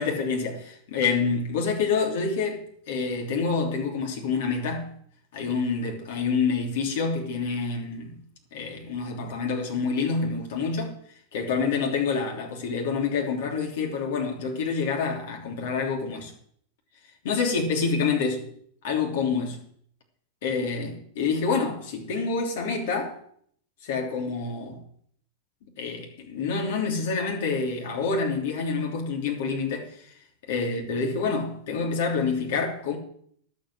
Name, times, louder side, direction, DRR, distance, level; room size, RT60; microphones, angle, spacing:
voice 1, 0.0-4.9 5.3-8.2 8.5-10.9 11.3-16.3 17.2-18.5 18.8-19.6 20.4-23.1 23.8-24.8 25.8-29.9 30.5-33.0, left 5 dB, 55° left, 3.2 m, -27 dB
11.5 x 7.4 x 7.8 m
figure-of-eight pair, 90°, 0 cm